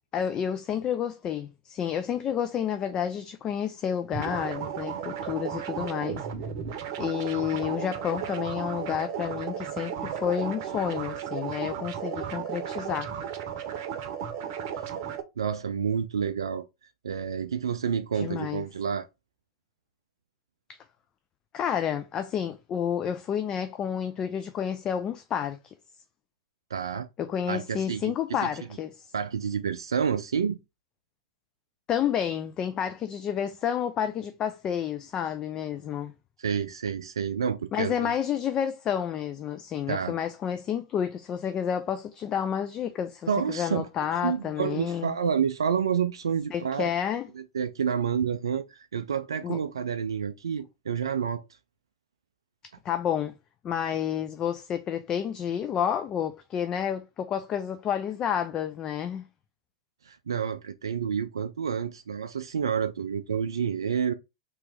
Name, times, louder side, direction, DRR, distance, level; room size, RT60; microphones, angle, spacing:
voice 1, 0.1-6.3 7.0-13.1 18.1-18.6 21.5-25.7 27.2-29.1 31.9-36.1 37.7-45.1 46.5-47.3 49.4-49.6 52.8-53.3 53.6-59.2, left 9 dB, 30° left, 0.4 m, -30 dB
sound 1, 4.1-15.2, right 8 dB, 45° right, 0.7 m, -34 dB
voice 2, 15.4-16.7 17.0-19.1 26.7-27.1 27.5-28.1 29.1-30.6 36.4-38.1 39.9-40.1 43.3-43.9 44.2-46.9 47.3-51.4 60.1-64.1, right 7 dB, 70° right, 0.3 m, -29 dB
3.3 x 2.9 x 3.4 m
figure-of-eight pair, 95°, 3 cm